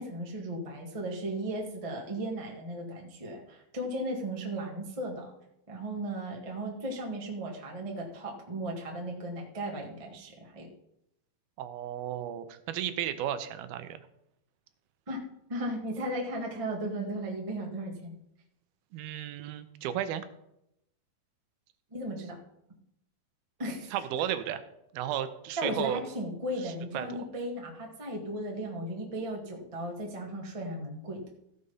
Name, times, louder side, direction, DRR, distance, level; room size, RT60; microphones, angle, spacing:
voice 1, 0.0-5.3 5.7-10.7 15.1-15.2 15.5-18.1 21.9-22.4 23.6-23.9 25.6-31.2, right 1 dB, 25° right, 0 dB, 0.7 m, -36 dB
voice 2, 11.6-14.0 18.9-20.2 23.9-24.6 24.9-26.0 26.6-27.2, right 10 dB, 85° right, 11 dB, 2.6 m, -34 dB
15.5 x 5.1 x 5.5 m, 0.80 s
omnidirectional pair, 4.3 m